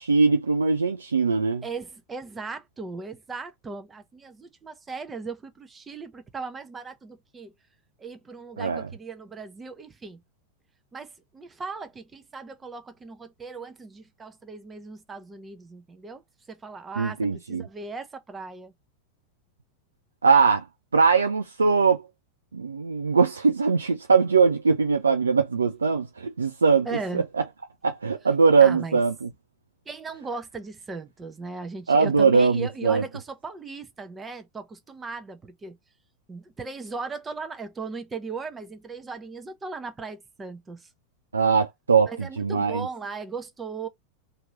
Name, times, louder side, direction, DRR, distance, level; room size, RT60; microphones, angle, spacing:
voice 1, 0.0-1.6 8.6-8.9 17.0-17.7 20.2-20.6 20.9-22.1 22.5-26.9 27.1-27.2 27.8-29.3 31.9-33.0 41.3-42.9, right 5 dB, 75° right, 0.4 m, -21 dB
voice 2, 1.6-7.5 8.0-10.2 10.9-16.2 16.5-18.7 26.8-27.2 28.6-29.0 29.9-35.8 36.3-40.9 42.0-43.9, right 4 dB, 15° right, 0.8 m, -37 dB
2.9 x 2.8 x 2.8 m
figure-of-eight pair, 90°, 0 cm